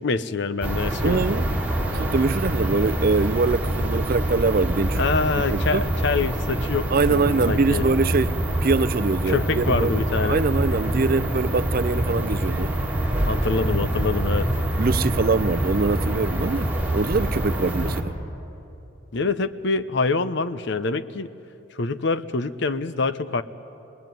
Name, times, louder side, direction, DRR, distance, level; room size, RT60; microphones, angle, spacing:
voice 1, 0.0-1.2 4.9-7.9 9.3-10.4 13.3-14.5 19.1-21.3 21.7-23.4, left 4 dB, 60° left, 0.8 m, -25 dB
sound 1, 0.6-18.0, right 1 dB, 10° right, 2.4 m, -25 dB
voice 2, 1.0-1.5 1.9-5.1 5.4-5.8 6.9-12.8 14.8-18.2, right 3 dB, 45° right, 0.5 m, -23 dB
27.0 x 20.0 x 9.3 m
head